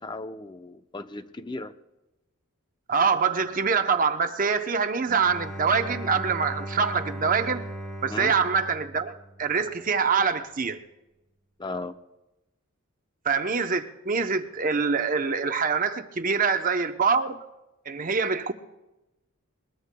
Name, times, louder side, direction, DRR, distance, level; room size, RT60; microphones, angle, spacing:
voice 1, 0.0-1.8 8.1-8.4 11.6-12.0, left 2 dB, 20° left, 0.6 m, -36 dB
voice 2, 2.9-7.6 8.0-9.1 9.4-10.8 13.2-17.4 17.9-18.5, right 5 dB, 40° right, 0.7 m, -25 dB
Bowed string instrument, 5.1-9.7, right 1 dB, 5° left, 2.1 m, -37 dB
21.5 x 21.0 x 2.2 m
head